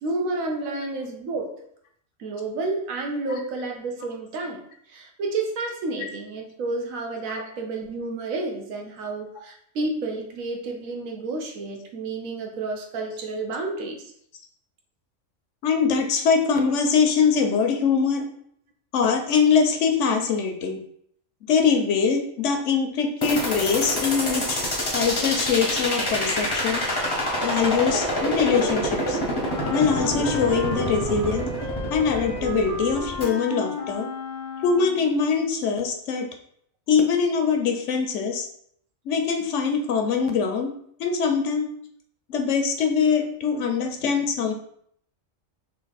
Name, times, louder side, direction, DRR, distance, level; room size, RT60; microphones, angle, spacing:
voice 1, 0.0-1.5 2.2-4.6 4.9-14.1, right 3 dB, 80° right, 2 dB, 1.1 m, -30 dB
voice 2, 15.6-18.3 18.9-20.8 21.5-24.6 24.9-26.8 27.4-29.2 29.7-31.5 31.9-34.1 34.6-36.3 36.9-38.5 39.1-40.7 41.0-41.7 42.3-44.5, left 6 dB, 70° left, 4 dB, 0.9 m, -23 dB
sound 1, 23.2-33.2, equal, 25° left, 0.6 m, -27 dB
Wind instrument woodwind instrument, 29.4-35.2, left 1 dB, 15° right, 0.7 m, -33 dB
3.3 x 2.8 x 3.9 m, 0.66 s
omnidirectional pair, 1.4 m